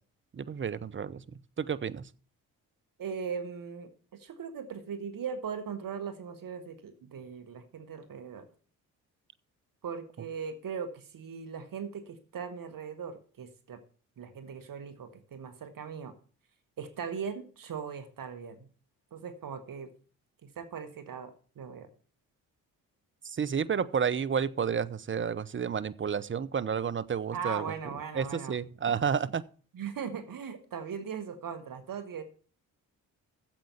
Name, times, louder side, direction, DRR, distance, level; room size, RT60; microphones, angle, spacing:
voice 1, 0.3-1.2 1.6-2.0 23.2-27.7 28.2-29.4, right 7 dB, 30° right, 0.7 m, -31 dB
voice 2, 3.0-8.5 9.8-13.8 14.2-16.1 16.8-18.7 19.1-19.9 20.4-21.9 27.3-28.6 29.7-32.2, right 6 dB, 55° right, 1.6 m, -39 dB
8.7 x 7.7 x 7.0 m
hypercardioid pair, 50°, 39 cm